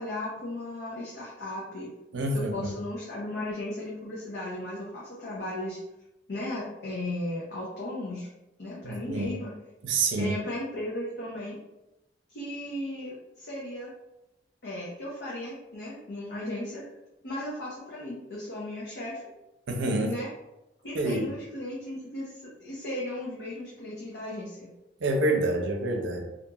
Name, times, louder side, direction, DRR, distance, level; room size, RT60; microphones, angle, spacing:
voice 1, 0.0-1.9 2.3-5.8 6.3-8.3 8.6-9.5 10.2-11.6 12.3-13.9 14.6-16.8 17.2-19.2 20.0-20.3 20.8-24.7, left 1 dB, 60° left, -7 dB, 0.7 m, -36 dB
voice 2, 2.1-2.5 8.8-9.3 9.8-10.3 19.7-20.1 20.9-21.3 25.0-26.2, right 2 dB, 80° right, 3 dB, 0.5 m, -27 dB
2.8 x 2.5 x 2.3 m, 0.93 s
head